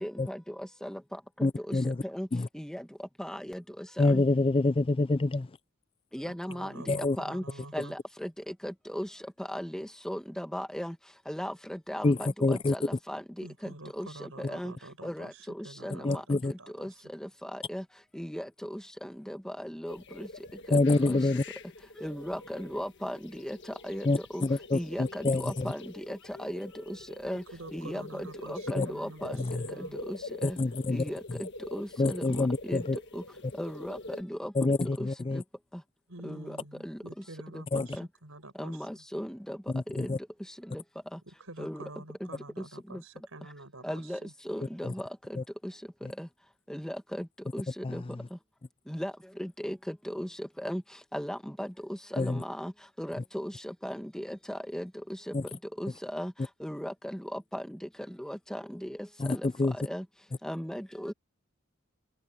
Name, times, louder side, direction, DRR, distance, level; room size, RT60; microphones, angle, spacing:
voice 1, 0.0-1.0 1.4-2.3 2.5-2.8 3.2-4.2 6.1-7.4 7.7-9.1 9.4-10.9 11.3-14.7 15.0-17.8 18.1-20.3 20.7-20.8 21.1-21.2 22.0-23.6 23.8-24.4 24.7-27.4 27.7-29.5 29.8-30.6 30.9-32.8 33.1-33.2 33.6-34.5 35.0-35.1 35.3-35.4 36.2-36.6 36.8-37.0 37.5-37.6 38.0-38.1 38.6-39.6 40.0-40.1 40.7-40.8 41.1-41.2 41.6-41.8 42.2-42.3 42.6-42.7 42.9-43.0 43.8-45.7 46.2-46.3 46.7-47.3 47.5-48.0 48.9-49.1 49.4-50.8 51.1-52.7 53.0-54.9 55.3-55.4 55.8-56.3 56.6-57.8 58.1-59.0 59.3-60.0 60.4-61.1, equal, 5° left, 1.6 m, -37 dB
voice 2, 1.4-2.0 2.3-2.5 4.0-5.5 6.9-7.2 12.0-12.8 16.0-16.5 20.7-21.4 24.0-25.7 28.8-28.9 29.4-29.6 30.4-31.0 32.0-33.0 34.5-35.4 37.7-37.9 39.7-40.2 44.8-44.9 45.4-45.5 46.0-46.1 47.8-48.3 52.2-52.4 55.3-55.4 59.2-59.8, left 2 dB, 25° left, 0.4 m, -27 dB
voice 3, 6.2-8.0 13.4-16.9 27.5-30.0 36.1-39.0 41.2-44.3, right 2 dB, 80° right, 5.8 m, -48 dB
sound 1, 19.9-34.2, left 2 dB, 60° left, 1.6 m, -45 dB
head